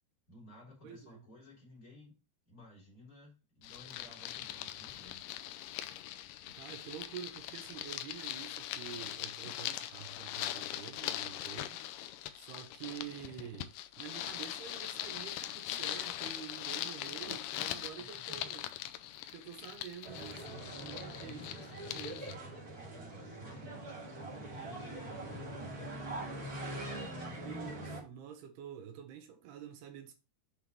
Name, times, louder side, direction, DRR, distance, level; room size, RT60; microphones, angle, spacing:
voice 1, 0.3-2.2 2.5-5.3 17.9-18.5 20.9-21.5 23.0-26.7, left 1 dB, 20° left, 3.8 m, -56 dB
voice 2, 0.8-1.3 6.6-11.8 12.3-18.7 19.3-21.4 21.8-22.4 27.3-30.1, right 9 dB, 75° right, 3.2 m, -48 dB
sound 1, 3.6-22.4, left 13 dB, 80° left, 2.5 m, -41 dB
sound 2, 20.0-28.0, right 1 dB, 25° right, 2.4 m, -43 dB
7.4 x 5.7 x 4.4 m
omnidirectional pair, 4.7 m